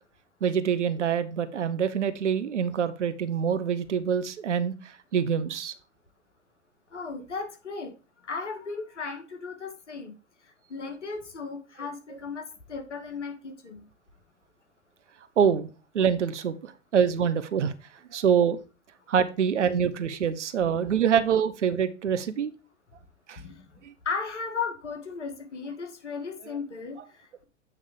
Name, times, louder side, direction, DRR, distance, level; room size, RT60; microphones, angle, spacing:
voice 1, 0.4-5.7 15.4-15.7 15.9-17.7 18.1-18.6 19.1-22.5 23.3-23.4 23.8-23.9, right 7 dB, 70° right, 12 dB, 0.9 m, -25 dB
voice 2, 6.9-7.9 8.2-10.1 10.7-13.9 23.4-23.6 24.0-27.4, left 5 dB, 70° left, 6 dB, 1.7 m, -36 dB
8.4 x 3.6 x 4.9 m, 0.33 s
figure-of-eight pair, 100°, 36 cm